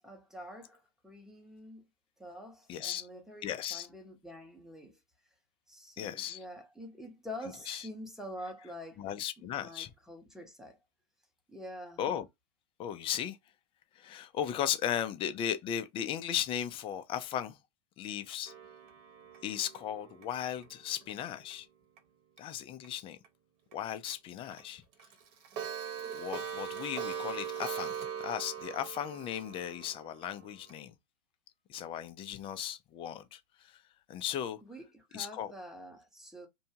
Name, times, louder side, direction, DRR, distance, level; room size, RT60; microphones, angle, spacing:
voice 1, 0.0-1.8 2.2-5.0 5.7-9.1 9.4-10.8 11.5-12.0 34.6-36.5, equal, ahead, 0.9 m, -46 dB
voice 2, 2.7-3.1 3.4-3.9 6.0-6.4 7.7-7.9 9.0-9.9 12.0-12.3 12.8-13.4 14.0-17.6 18.0-18.5 19.4-21.7 22.4-23.2 23.7-24.8 26.1-30.9 31.7-33.8 34.1-34.6 35.1-35.5, left 10 dB, 25° left, 0.5 m, -36 dB
Clock, 18.5-21.5 22.0-22.1 22.4-22.5 22.8-22.9 23.2-23.3 23.7-23.8 24.1-24.2 24.5-24.6 24.9-30.8, right 8 dB, 40° right, 1.0 m, -41 dB
2.7 x 2.2 x 2.7 m
hypercardioid pair, 115°, 21 cm